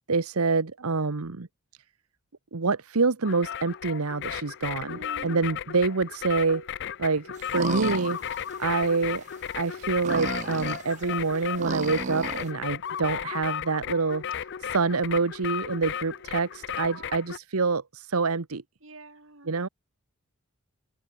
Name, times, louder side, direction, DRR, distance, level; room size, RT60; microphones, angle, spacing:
voice 1, 0.1-1.5 2.5-6.7 7.0-8.2 8.6-9.2 9.6-14.2 14.7-18.6 19.5-19.7, right 4 dB, 85° right, 1.1 m, -26 dB
sound 1, 3.2-17.4, left 8 dB, 55° left, 0.4 m, -35 dB
voice 2, 4.8-5.6 15.9-17.3 18.8-19.5, right 2 dB, 65° right, 4.3 m, -47 dB
sound 2, 7.4-8.9 9.2-9.3 9.7-12.5, right 5 dB, 35° right, 0.3 m, -33 dB
open air
head